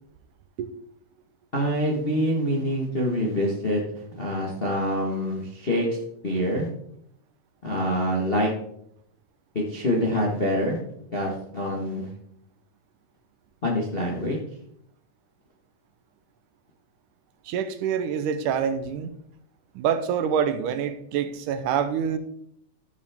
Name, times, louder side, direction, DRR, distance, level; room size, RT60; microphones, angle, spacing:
voice 1, 1.5-5.9 6.2-6.7 7.6-8.5 9.5-10.8 11.1-12.1 13.6-14.4, equal, 40° left, -2 dB, 0.7 m, -25 dB
voice 2, 17.5-19.1 19.8-22.2, right 8 dB, 85° right, 9 dB, 2.3 m, -26 dB
13.0 x 7.2 x 3.6 m, 0.71 s
omnidirectional pair, 3.6 m